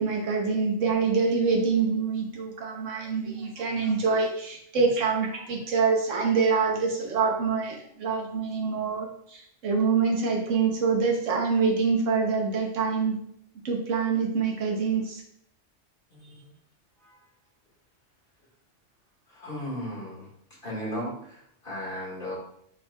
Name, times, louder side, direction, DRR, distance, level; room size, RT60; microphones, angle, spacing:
voice 1, 0.0-13.2 13.6-15.2, right 5 dB, 85° right, 0 dB, 1.4 m, -25 dB
voice 2, 16.1-16.5 17.0-17.2 19.3-20.3 20.6-22.3, equal, 45° left, -6 dB, 2.2 m, -36 dB
8.7 x 4.5 x 2.4 m, 0.68 s
omnidirectional pair, 1.3 m